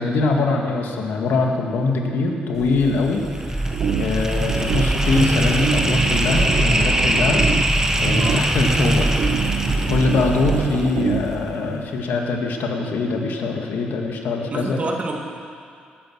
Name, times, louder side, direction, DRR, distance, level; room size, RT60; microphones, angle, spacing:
voice 1, 0.0-3.2 3.5-7.4 8.0-9.1 9.9-14.8, left 3 dB, 75° left, 1 dB, 1.9 m, -23 dB
sound 1, 2.6-11.7, right 1 dB, 15° right, 1.4 m, -22 dB
sound 2, 3.7-11.4, right 7 dB, 70° right, 0.9 m, -27 dB
voice 2, 8.1-8.4 14.4-15.2, right 2 dB, 40° right, 0 dB, 2.6 m, -28 dB
19.0 x 9.1 x 6.1 m, 2.3 s
cardioid pair, 70°, 3 cm